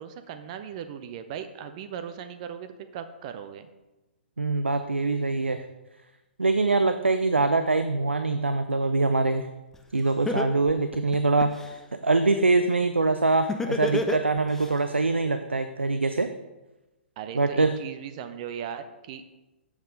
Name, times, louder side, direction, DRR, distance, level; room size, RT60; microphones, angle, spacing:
voice 1, 0.0-3.7 17.2-19.2, right 8 dB, 40° right, 9 dB, 0.5 m, -38 dB
voice 2, 4.4-5.7 6.4-9.5 9.9-16.3 17.3-17.7, right 3 dB, 85° right, 9 dB, 0.4 m, -24 dB
Laughter, 9.7-9.8 10.3-11.7 13.5-14.7, left 2 dB, 5° left, 0.5 m, -28 dB
7.3 x 7.2 x 3.8 m, 1.1 s
figure-of-eight pair, 120°, 6 cm